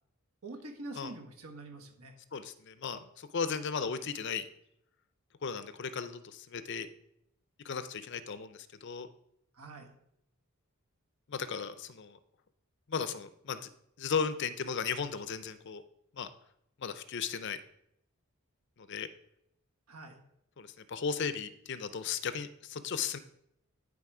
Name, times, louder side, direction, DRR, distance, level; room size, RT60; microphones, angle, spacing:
voice 1, 0.4-2.1 9.5-9.9 19.9-20.2, right 2 dB, 80° right, 3 dB, 1.5 m, -45 dB
voice 2, 2.3-4.5 5.4-6.9 7.6-9.1 11.3-12.2 12.9-13.6 14.0-15.8 16.1-16.3 16.8-17.6 18.8-19.1 20.6-23.2, left 6 dB, 55° left, 12 dB, 0.5 m, -36 dB
11.0 x 4.0 x 4.9 m, 0.77 s
head